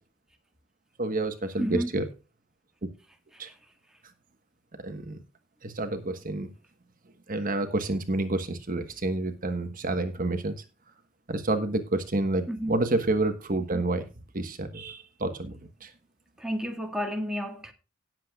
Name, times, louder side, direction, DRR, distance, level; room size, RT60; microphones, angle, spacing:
voice 1, 1.0-2.0 3.4-3.5 4.8-5.2 5.6-6.5 7.3-10.6 11.3-14.1 14.3-15.9, right 2 dB, 45° right, 1.3 m, -29 dB
voice 2, 1.6-1.9 3.3-3.5 12.5-12.8 16.4-17.7, equal, 5° right, 1.7 m, -31 dB
18.5 x 7.6 x 2.4 m
head